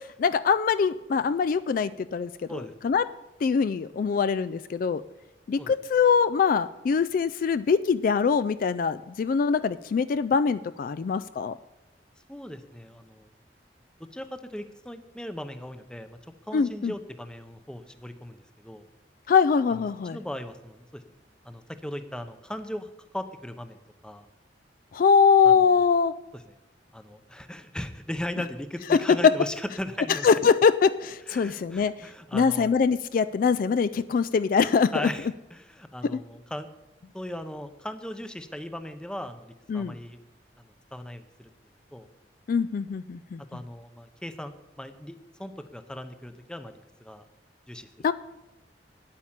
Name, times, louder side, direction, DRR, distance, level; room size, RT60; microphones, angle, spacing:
voice 1, 0.2-3.1 3.4-5.0 5.5-11.5 16.5-16.9 19.3-20.2 24.9-26.1 28.9-29.3 30.2-31.9 32.3-35.1 36.0-36.2 39.7-39.9 42.5-43.4 48.0-48.1, left 6 dB, 50° left, 13 dB, 0.3 m, -23 dB
voice 2, 12.3-13.3 14.1-16.2 16.4-18.8 19.7-19.8 20.1-21.0 21.4-24.3 25.4-25.8 26.3-26.5 26.9-30.3 31.3-32.7 34.9-36.7 37.1-40.2 40.6-41.5 41.9-42.1 43.5-45.1 45.4-47.3 47.7-48.1, left 1 dB, 5° left, 10 dB, 0.7 m, -38 dB
9.7 x 8.7 x 7.3 m, 0.97 s
head